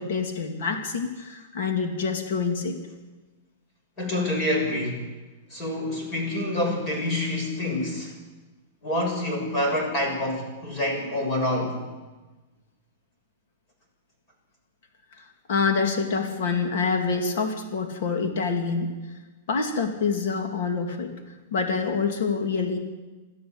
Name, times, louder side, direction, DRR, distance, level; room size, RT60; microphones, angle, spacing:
voice 1, 0.0-2.7 15.2-18.9 19.5-21.1 21.5-22.8, left 5 dB, 60° left, 3 dB, 3.1 m, -26 dB
voice 2, 4.0-5.1 5.5-8.1 8.8-11.8, left 1 dB, 25° left, 2 dB, 6.9 m, -27 dB
29.0 x 13.0 x 8.2 m, 1.2 s
supercardioid pair, 165°, 0 cm